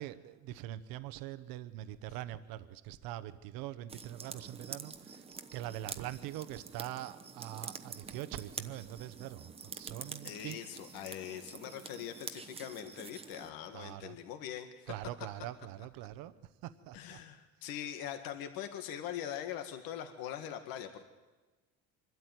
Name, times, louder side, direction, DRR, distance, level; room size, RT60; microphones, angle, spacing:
voice 1, 0.0-5.2 5.5-10.6 13.7-14.2 14.9-16.3 16.6-17.2, right 13 dB, 80° right, 13 dB, 1.0 m, -43 dB
sound 1, 3.9-13.5, right 5 dB, 15° right, 0.9 m, -47 dB
voice 2, 10.2-14.9 16.9-21.0, left 10 dB, 85° left, 7 dB, 1.9 m, -42 dB
25.0 x 12.5 x 9.3 m, 1.2 s
cardioid pair, 150°, 34 cm